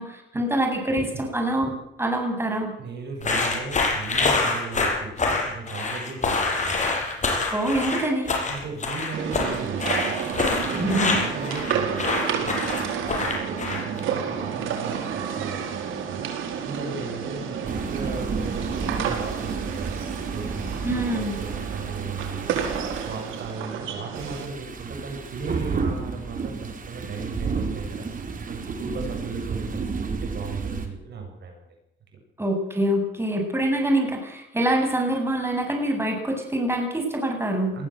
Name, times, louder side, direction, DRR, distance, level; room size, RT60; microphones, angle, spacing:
voice 1, 0.0-1.7 2.0-2.7 7.5-8.4 10.7-11.2 20.8-21.4 32.4-37.7, right 1 dB, 10° right, 3 dB, 8.0 m, -25 dB
voice 2, 2.8-6.9 8.5-15.6 16.1-28.1 28.5-31.7 37.7-37.9, right 4 dB, 60° right, 2 dB, 7.8 m, -36 dB
sound 1, 3.2-14.0, left 3 dB, 40° left, 7.4 m, -25 dB
sound 2, 9.1-24.5, right 7 dB, 85° right, 4.6 m, -31 dB
sound 3, 17.6-23.6 24.1-30.9, right 4 dB, 45° right, 4.6 m, -32 dB
21.5 x 15.0 x 8.0 m, 0.83 s
cardioid pair, 90°, 20 cm